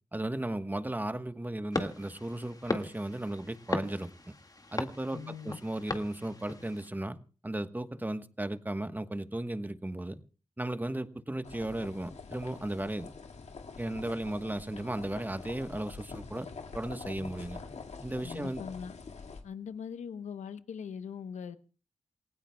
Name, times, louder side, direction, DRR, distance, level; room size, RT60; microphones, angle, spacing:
voice 1, 0.1-4.1 4.7-7.2 7.4-10.2 10.6-13.1 13.8-16.5 16.7-17.6 18.0-18.6, right 1 dB, 15° right, 1.2 m, -35 dB
sound 1, 1.7-6.9, left 2 dB, 30° left, 2.0 m, -38 dB
voice 2, 5.1-5.6 18.2-19.0 19.4-21.6, left 7 dB, 85° left, 1.0 m, -41 dB
sound 2, 11.4-19.4, left 4 dB, 70° left, 2.1 m, -45 dB
28.5 x 16.5 x 2.3 m
cardioid pair, 45°, 12 cm